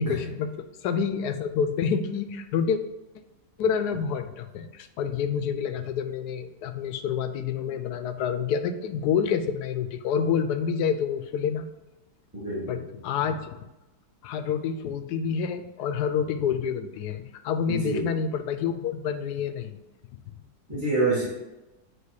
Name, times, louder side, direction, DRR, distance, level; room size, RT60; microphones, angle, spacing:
voice 1, 0.0-2.8 3.6-11.7 12.7-13.6 14.2-19.8, left 7 dB, 75° left, 9 dB, 1.1 m, -28 dB
voice 2, 12.3-12.8 17.7-18.1 20.7-21.3, right 2 dB, 10° right, -8 dB, 1.3 m, -27 dB
8.0 x 2.9 x 4.7 m, 1.0 s
omnidirectional pair, 1.9 m